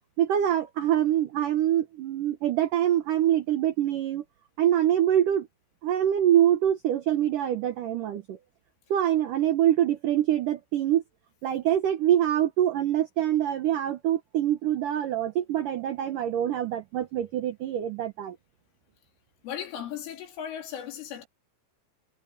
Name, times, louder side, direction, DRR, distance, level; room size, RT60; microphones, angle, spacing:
voice 1, 0.2-4.2 4.6-5.5 5.8-8.4 8.9-11.0 11.4-18.4, right 11 dB, 90° right, 1.8 m, -25 dB
voice 2, 19.4-21.3, left 9 dB, 85° left, 5.7 m, -36 dB
omnidirectional pair, 5.5 m